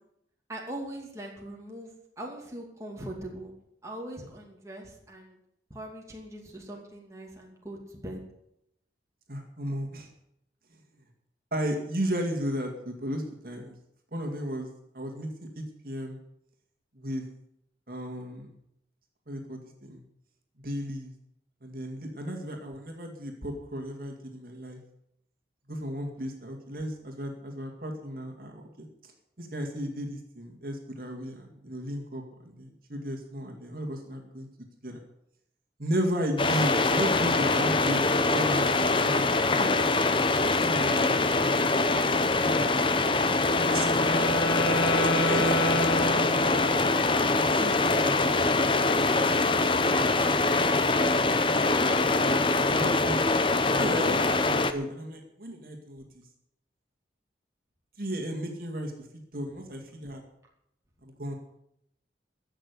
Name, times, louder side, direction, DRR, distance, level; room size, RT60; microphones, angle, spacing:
voice 1, 0.5-1.9 2.2-3.5 3.8-5.4 5.7-8.2 48.0-48.1 53.0-53.1 53.5-53.7, right 1 dB, 15° right, -1 dB, 2.5 m, -41 dB
voice 2, 9.3-10.1 11.5-13.7 14.1-14.7 14.9-15.3 15.6-16.2 16.9-17.2 17.9-18.5 19.3-20.0 20.6-21.1 21.6-24.8 25.7-29.1 29.4-34.5 34.8-35.0 35.8-39.8 40.6-42.8 43.1-43.3 43.7-43.9 44.2-44.4 45.3-46.1 46.5-46.6 47.2-48.3 48.8-49.9 50.2-50.4 51.0-51.8 52.6-53.2 53.8-56.2 58.0-60.2 61.0-61.3, equal, 50° right, 2 dB, 2.3 m, -35 dB
sound 1, 36.4-54.7, left 3 dB, 30° left, 0.8 m, -24 dB
Wind instrument woodwind instrument, 43.3-47.0, equal, 85° left, 2.0 m, -29 dB
15.5 x 6.7 x 9.7 m, 0.77 s
head